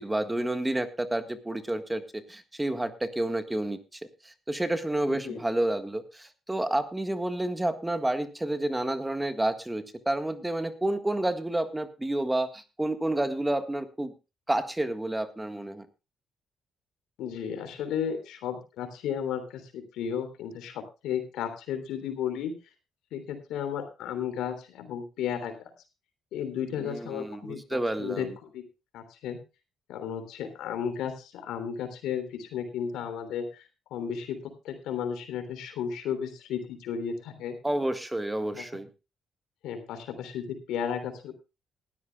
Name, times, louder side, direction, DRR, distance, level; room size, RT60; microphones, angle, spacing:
voice 1, 0.0-14.1 14.5-15.9 26.8-28.3 37.6-38.9, right 1 dB, 10° right, 10 dB, 1.7 m, -30 dB
voice 2, 5.1-5.4 17.2-22.5 23.1-25.7 26.3-28.6 28.9-29.4 29.9-33.6 33.9-37.6 38.5-38.8 39.6-41.3, left 8 dB, 85° left, 8 dB, 3.3 m, -34 dB
19.5 x 13.0 x 2.4 m, 0.28 s
cardioid pair, 90°, 0 cm